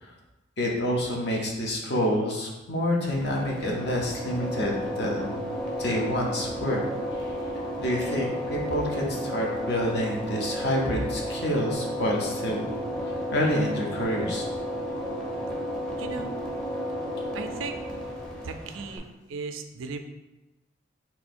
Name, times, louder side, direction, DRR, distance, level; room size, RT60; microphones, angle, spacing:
voice 1, 0.6-5.5 5.8-6.8 7.3-7.4 7.8-12.7 13.3-14.5, equal, 55° left, -1 dB, 0.8 m, -28 dB
sound 1, 3.0-19.0, equal, 5° left, 0.5 m, -33 dB
voice 2, 16.0-16.3 17.3-17.8 18.4-20.0, right 4 dB, 80° right, 7 dB, 0.4 m, -36 dB
3.5 x 2.7 x 4.3 m, 1.0 s
head